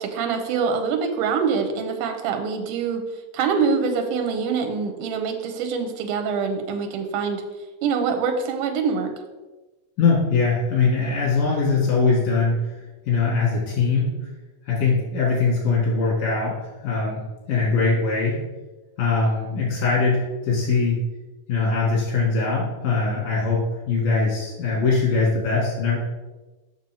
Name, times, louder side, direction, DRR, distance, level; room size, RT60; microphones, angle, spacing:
voice 1, 0.0-3.0 3.3-7.4 7.8-9.1, right 5 dB, 90° right, 5 dB, 2.3 m, -24 dB
voice 2, 10.0-14.1 14.6-17.2 17.5-18.4 19.0-21.0 21.5-26.0, left 4 dB, 85° left, -5 dB, 3.2 m, -22 dB
6.6 x 6.2 x 4.4 m, 1.1 s
omnidirectional pair, 3.7 m